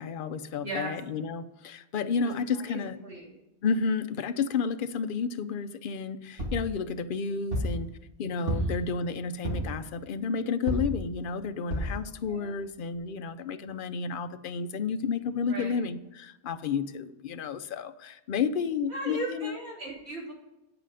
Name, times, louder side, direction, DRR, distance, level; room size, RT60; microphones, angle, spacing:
voice 1, 0.0-3.0 3.6-7.9 8.2-19.6, left 5 dB, 60° left, 11 dB, 0.7 m, -31 dB
voice 2, 0.6-0.9 2.2-3.4 8.4-8.7 12.3-12.5 15.5-15.8 18.9-20.3, right 1 dB, 75° right, -4 dB, 3.4 m, -38 dB
sound 1, 6.4-6.7 7.5-7.8 8.5-8.9 9.4-9.8 10.7-11.0 11.7-12.0 12.6-12.7 12.9-13.0, right 1 dB, 55° right, 2.6 m, -30 dB
8.9 x 7.9 x 4.9 m, 0.94 s
omnidirectional pair, 1.1 m